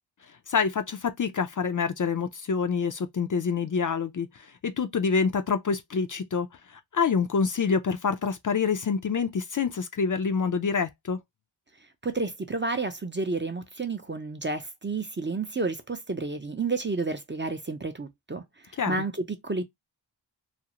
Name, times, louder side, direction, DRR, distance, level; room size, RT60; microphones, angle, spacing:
voice 1, 0.5-4.3 4.6-6.5 6.9-11.2 18.8-19.0, left 5 dB, 45° left, 0.4 m, -26 dB
voice 2, 12.0-18.4 18.9-19.6, right 3 dB, 25° right, 0.5 m, -30 dB
2.5 x 2.0 x 2.8 m
cardioid pair, 40°, 46 cm